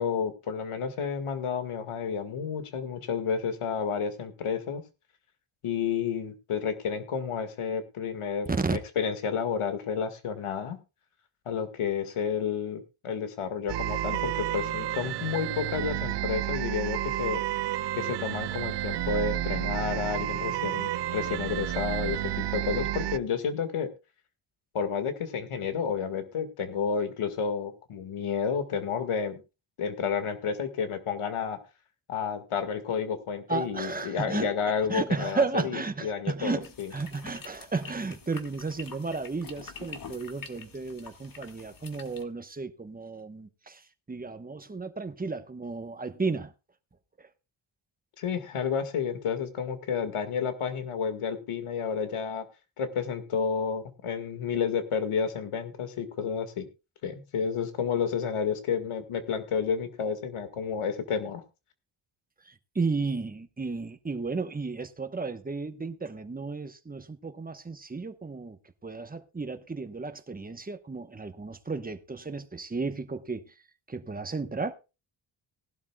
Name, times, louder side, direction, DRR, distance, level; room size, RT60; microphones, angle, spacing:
voice 1, 0.0-4.8 5.6-10.8 11.5-17.4 17.9-23.9 24.7-29.4 29.8-31.6 32.1-36.9 48.2-52.4 52.8-56.7 57.0-61.4, left 6 dB, 85° left, 2.0 m, -31 dB
sound 1, 13.7-23.2, right 13 dB, 55° right, 0.5 m, -31 dB
voice 2, 33.5-34.5 34.9-46.5 47.2-47.3 62.4-68.6 68.8-73.5 73.9-74.7, right 4 dB, 15° right, 1.1 m, -33 dB
sound 2, 36.6-42.2, left 5 dB, 40° left, 1.8 m, -46 dB
19.0 x 12.0 x 2.3 m
wide cardioid pair, 125°, 49 cm